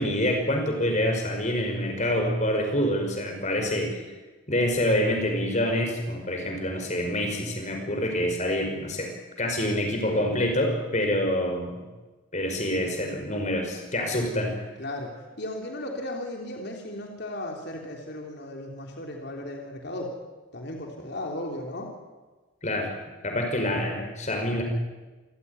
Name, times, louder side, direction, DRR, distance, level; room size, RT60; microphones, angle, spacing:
voice 1, 0.0-4.0 4.5-9.1 9.4-11.8 12.3-14.6 22.6-22.9 23.2-24.6, left 1 dB, 35° left, 4 dB, 5.4 m, -26 dB
voice 2, 14.8-15.1 15.4-20.2 20.5-21.9, left 1 dB, 55° left, 1 dB, 3.7 m, -35 dB
28.5 x 16.0 x 9.9 m, 1.3 s
head